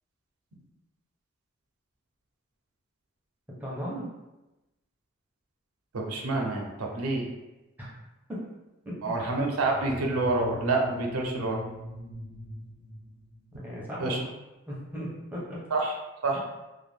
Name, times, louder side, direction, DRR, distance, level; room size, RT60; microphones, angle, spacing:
voice 1, 3.6-4.1 7.8-7.9 8.3-8.5 8.9-9.1 13.6-14.3 14.7-15.6, equal, 10° right, -6 dB, 0.6 m, -36 dB
voice 2, 5.9-7.3 9.0-11.6 14.0-14.2 15.7-15.9 16.2-16.4, right 2 dB, 90° right, 0 dB, 0.5 m, -27 dB
sound 1, 9.6-13.7, left 2 dB, 40° left, 0.4 m, -42 dB
2.4 x 2.1 x 3.3 m, 1.0 s
head